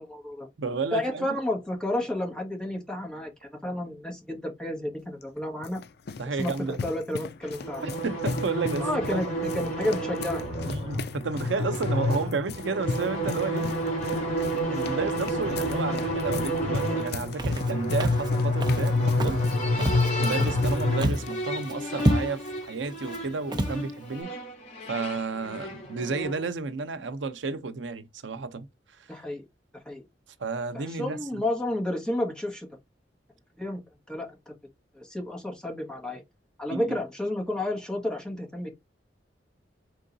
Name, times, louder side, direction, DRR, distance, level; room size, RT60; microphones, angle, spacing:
voice 1, 0.0-0.5 0.9-3.3 3.6-5.8 6.3-6.5 6.8-7.8 8.8-9.3 9.5-10.4 29.1-29.4 29.8-30.0 30.7-32.7 33.6-33.8 34.1-34.3 34.9-36.2 36.6-38.7, left 1 dB, 5° left, 1.5 m, -31 dB
voice 2, 0.6-1.3 6.2-6.8 7.8-9.2 10.7-13.7 14.7-19.4 20.2-24.3 24.9-28.7 30.4-31.4 36.7-37.0, right 4 dB, 85° right, 0.6 m, -32 dB
sound 1, 5.2-21.3, left 4 dB, 60° left, 0.5 m, -37 dB
sound 2, 7.4-26.5, left 1 dB, 40° left, 2.8 m, -29 dB
Walk footsteps, 17.4-17.7 18.0-18.3 18.6-18.9 19.2-19.5 19.8-20.7 21.0-21.3 21.6-21.7 22.0-22.5 23.1-23.2 23.5-23.8, right 1 dB, 25° right, 0.8 m, -27 dB
4.5 x 3.8 x 2.6 m
head